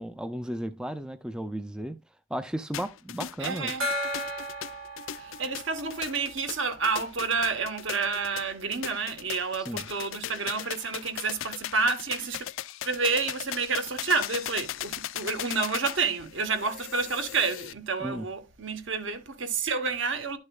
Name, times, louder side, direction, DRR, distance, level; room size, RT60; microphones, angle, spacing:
voice 1, 0.0-2.0 2.3-3.7 9.5-9.8 18.0-18.2, right 1 dB, 5° right, 0.3 m, -34 dB
sound 1, 2.7-17.7, left 12 dB, 70° left, 0.4 m, -38 dB
voice 2, 3.4-3.9 5.1-12.5 12.8-20.4, right 4 dB, 65° right, 1.1 m, -29 dB
Gong, 3.8-7.1, equal, 80° right, 1.7 m, -35 dB
11.0 x 6.4 x 2.3 m
head